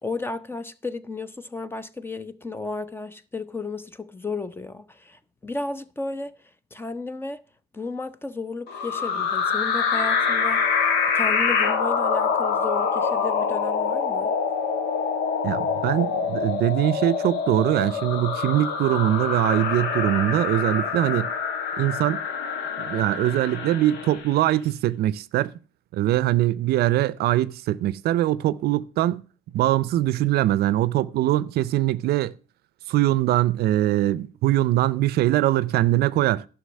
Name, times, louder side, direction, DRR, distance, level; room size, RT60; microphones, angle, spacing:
voice 1, 0.0-6.3 6.7-7.4 7.7-14.3, left 3 dB, 15° left, 0.7 m, -34 dB
sound 1, 8.7-24.3, left 5 dB, 85° left, 1.4 m, -25 dB
sound 2, 9.9-24.2, left 6 dB, 60° left, 3.5 m, -40 dB
voice 2, 15.4-21.3 21.8-22.2 22.8-25.5 25.9-29.2 29.5-32.3 32.9-36.5, right 14 dB, 70° right, 0.5 m, -22 dB
11.5 x 6.1 x 6.2 m
cardioid pair, 110°, 17 cm